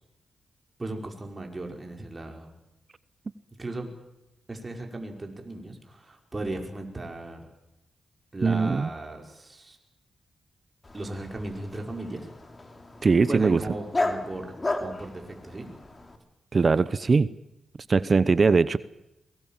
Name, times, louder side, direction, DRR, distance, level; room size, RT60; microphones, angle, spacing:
voice 1, 0.8-2.5 3.6-3.9 4.5-7.5 8.3-9.8 10.9-12.3 13.3-15.7, right 2 dB, 25° right, 2 dB, 5.5 m, -36 dB
voice 2, 8.4-8.9 13.0-13.6 16.5-17.3 17.9-18.8, right 4 dB, 45° right, 17 dB, 0.8 m, -21 dB
Dog, 10.8-16.2, left 2 dB, 30° left, 3.1 m, -34 dB
23.0 x 21.0 x 7.5 m, 0.89 s
cardioid pair, 65°, 0 cm